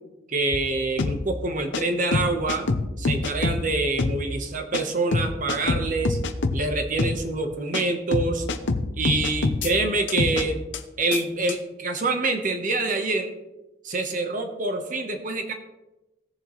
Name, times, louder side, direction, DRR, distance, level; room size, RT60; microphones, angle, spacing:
voice 1, 0.3-2.6 3.0-6.2 6.5-8.5 9.0-10.6 11.0-13.3 13.8-15.5, right 2 dB, 40° right, 5 dB, 0.9 m, -26 dB
sound 1, 0.5-0.6 1.0-1.2 1.7-1.8 2.1-3.6 4.0-4.2 4.7-4.8 5.1-6.6 7.0-7.2 7.7-7.8 8.1-9.7 10.1-10.4 10.7-10.8 11.1-11.2 11.5-11.6, left 3 dB, 65° left, 0.7 m, -25 dB
17.0 x 7.1 x 3.0 m, 1.0 s
head